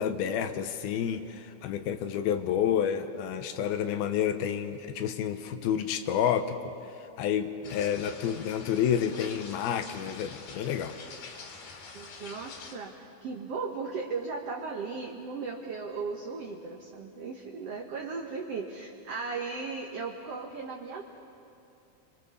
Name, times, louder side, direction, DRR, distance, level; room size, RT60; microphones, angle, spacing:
voice 1, 0.0-6.7 7.0-10.9, left 9 dB, 90° left, 8 dB, 2.8 m, -29 dB
sound 1, 7.6-12.8, left 4 dB, 75° left, 4.2 m, -46 dB
voice 2, 11.9-21.0, right 4 dB, 60° right, 1 dB, 1.8 m, -37 dB
29.5 x 23.0 x 7.0 m, 2.8 s
omnidirectional pair, 4.4 m